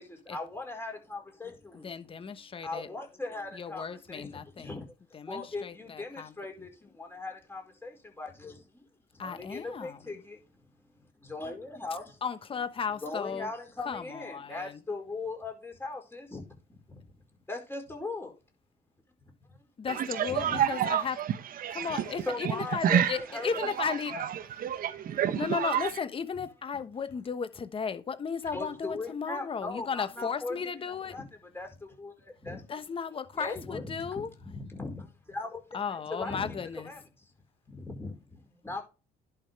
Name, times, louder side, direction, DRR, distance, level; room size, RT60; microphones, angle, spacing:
voice 1, 0.0-1.9 2.6-8.8 9.1-12.2 13.0-17.0 17.5-18.4 20.3-20.7 21.9-23.5 24.1-24.2 24.7-24.8 28.5-30.6 31.1-31.2 31.5-32.6 33.3-35.6 36.1-36.6 36.8-37.0 37.7-38.8, left 3 dB, 15° left, 4.8 m, -39 dB
voice 2, 1.7-2.9 3.5-4.8 5.1-6.3 9.2-10.0 12.2-13.5 13.8-14.8 19.8-21.2 21.7-24.1 25.3-31.2 32.7-34.3 35.7-36.9, left 6 dB, 30° left, 1.1 m, -35 dB
voice 3, 19.9-23.2 23.5-25.9, right 10 dB, 55° right, 1.1 m, -29 dB
11.0 x 6.0 x 3.5 m
cardioid pair, 110°, 17 cm